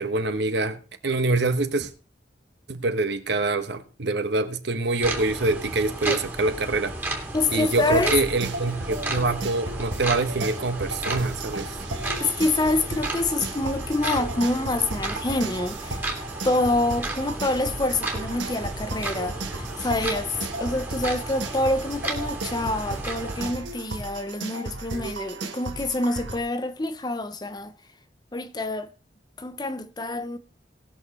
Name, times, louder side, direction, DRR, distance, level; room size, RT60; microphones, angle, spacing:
voice 1, 0.0-1.9 2.7-6.9 7.5-11.8, right 3 dB, 65° right, 1.2 m, -25 dB
sound 1, 5.0-23.5, right 2 dB, 10° right, 2.0 m, -34 dB
voice 2, 7.3-8.2 12.2-16.1 16.4-27.7 28.3-28.9 29.4-30.4, left 2 dB, 20° left, 0.7 m, -26 dB
sound 2, 7.5-26.4, right 2 dB, 85° right, 1.6 m, -35 dB
19.0 x 6.5 x 4.1 m
head